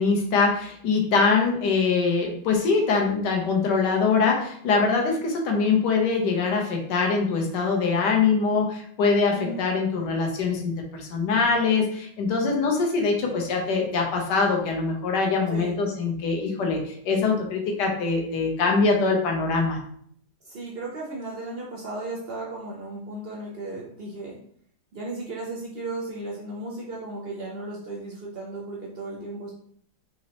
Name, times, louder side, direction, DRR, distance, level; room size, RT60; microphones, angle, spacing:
voice 1, 0.0-19.8, left 4 dB, 75° left, 1 dB, 1.4 m, -23 dB
voice 2, 9.3-9.7 15.5-15.8 20.4-24.4 24.9-29.6, right 2 dB, 60° right, -3 dB, 0.6 m, -35 dB
4.1 x 2.9 x 2.9 m, 0.64 s
omnidirectional pair, 1.9 m